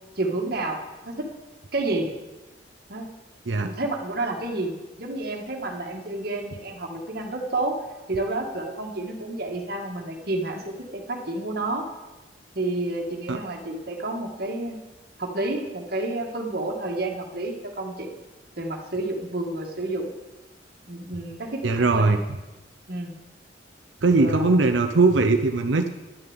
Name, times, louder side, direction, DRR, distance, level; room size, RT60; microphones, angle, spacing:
voice 1, 0.2-0.8 1.0-1.2 1.7-2.1 2.9-3.1 3.6-4.7 5.0-7.8 8.1-11.8 12.5-14.8 15.2-18.1 18.6-20.1 20.9-22.3 22.9-23.1 24.0-24.6, right 2 dB, 60° right, 2 dB, 1.6 m, -30 dB
voice 2, 21.6-22.2 24.0-25.9, right 3 dB, 85° right, 6 dB, 0.7 m, -20 dB
11.0 x 6.9 x 8.7 m, 1.1 s
head